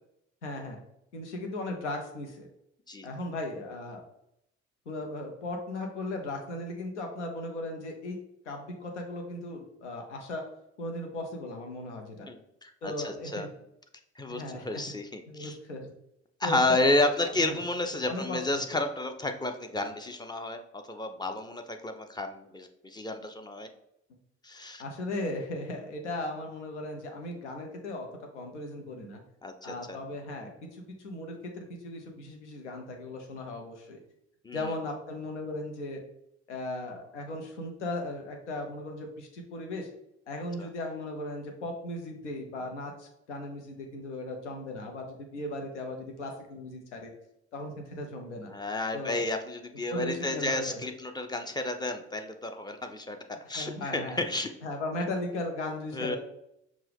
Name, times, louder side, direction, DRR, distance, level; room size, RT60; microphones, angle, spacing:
voice 1, 0.4-0.8 1.1-2.5 3.0-4.0 4.9-8.2 8.4-10.4 10.8-12.3 12.8-13.5 14.3-14.8 15.3-15.9 16.4-16.9 17.2-17.6 18.1-18.6 24.8-28.1 28.3-29.2 29.6-34.0 34.5-36.0 36.5-39.9 40.3-47.1 47.5-48.5 48.9-49.3 49.9-50.7 53.5-54.2 54.6-56.2, left 2 dB, 85° left, 3 dB, 0.6 m, -37 dB
voice 2, 12.3-13.5 14.2-15.6 16.4-20.6 20.9-23.7 24.4-24.8 29.4-30.0 34.4-34.7 40.6-40.7 48.5-53.2 53.5-54.5 55.9-56.2, left 2 dB, 10° left, 6 dB, 0.5 m, -31 dB
5.3 x 2.4 x 3.4 m, 0.79 s
figure-of-eight pair, 45°, 34 cm